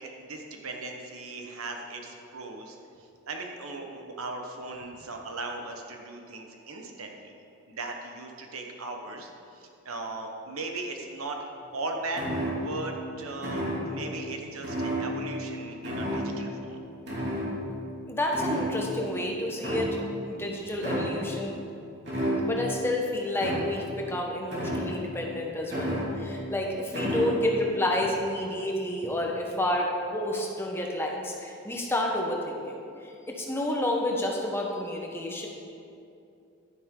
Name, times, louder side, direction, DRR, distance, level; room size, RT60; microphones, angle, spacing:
voice 1, 0.0-7.3 7.7-11.4 11.7-16.8 29.0-29.2, right 2 dB, 90° right, 2 dB, 1.2 m, -38 dB
sound 1, 12.2-12.9 13.4-14.0 14.6-15.5 15.8-16.5 17.1-18.0 18.3-19.1 19.6-20.2 20.8-21.3 22.0-22.7 23.4-23.9 24.5-25.2 25.7-26.4 26.9-27.4, equal, 55° right, 2.9 m, -31 dB
voice 2, 18.1-20.0 20.3-21.6 22.4-35.5, left 1 dB, 10° left, -1 dB, 1.1 m, -30 dB
11.5 x 9.7 x 3.9 m, 2.6 s
head